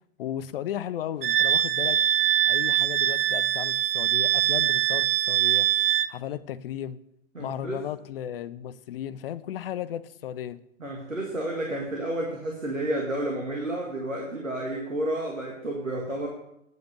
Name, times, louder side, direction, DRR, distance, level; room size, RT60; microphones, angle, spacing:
voice 1, 0.2-2.0 2.5-5.7 6.1-7.0 7.4-10.6, left 11 dB, 50° left, 16 dB, 0.6 m, -35 dB
Wind instrument woodwind instrument, 1.2-6.1, right 12 dB, 50° right, 0.4 m, -23 dB
voice 2, 7.3-7.8 10.8-16.3, right 1 dB, 85° right, 0 dB, 2.1 m, -31 dB
9.3 x 7.7 x 6.6 m, 0.80 s
figure-of-eight pair, 110°, 38 cm